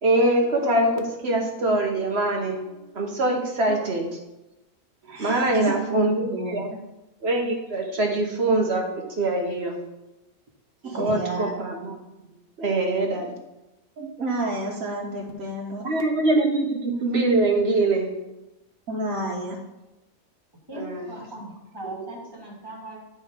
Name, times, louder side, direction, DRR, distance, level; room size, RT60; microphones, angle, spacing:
voice 1, 0.0-2.6 2.9-4.1 5.2-6.7 7.2-9.8 10.9-11.9 12.6-13.3 15.8-18.1 20.7-21.1, right 2 dB, 50° right, 2 dB, 1.4 m, -23 dB
voice 2, 5.0-6.8 10.8-11.5 14.0-15.9 18.9-19.6 21.8-22.1, right 1 dB, 75° right, -3 dB, 1.6 m, -31 dB
voice 3, 20.7-23.0, right 1 dB, 15° right, -3 dB, 2.1 m, -39 dB
10.5 x 4.3 x 5.1 m, 0.98 s
omnidirectional pair, 1.5 m